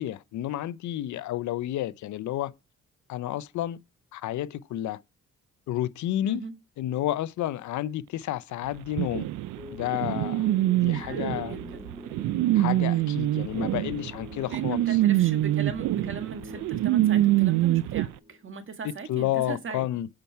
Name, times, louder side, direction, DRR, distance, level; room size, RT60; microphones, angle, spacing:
voice 1, 0.0-2.5 3.1-3.8 4.1-5.0 5.7-6.4 6.8-9.3 9.7-11.6 12.5-15.0 19.1-20.1, left 13 dB, 75° left, 0.6 m, -31 dB
sound 1, 9.0-18.1, right 15 dB, 80° right, 0.6 m, -25 dB
sound 2, 9.6-18.6, left 1 dB, 15° right, 2.6 m, -45 dB
voice 2, 10.9-11.9 14.5-19.9, right 5 dB, 40° right, 1.6 m, -39 dB
8.8 x 5.8 x 4.5 m
cardioid pair, 90°, 30 cm